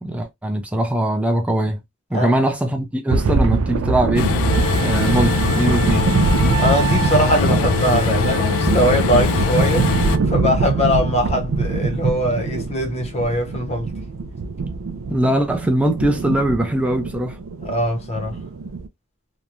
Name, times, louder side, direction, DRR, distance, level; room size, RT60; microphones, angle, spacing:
voice 1, 0.0-1.8 2.1-4.3 4.8-6.2 14.6-14.7 15.1-17.4, right 1 dB, 5° right, 0.4 m, -21 dB
sound 1, 3.1-18.9, right 4 dB, 65° right, 0.4 m, -23 dB
Train, 4.2-10.2, left 7 dB, 60° left, 0.3 m, -22 dB
Wind instrument woodwind instrument, 4.5-10.3, right 6 dB, 45° right, 0.8 m, -29 dB
voice 2, 6.6-13.9 17.6-18.4, equal, 30° left, 0.8 m, -21 dB
3.0 x 2.2 x 2.4 m
head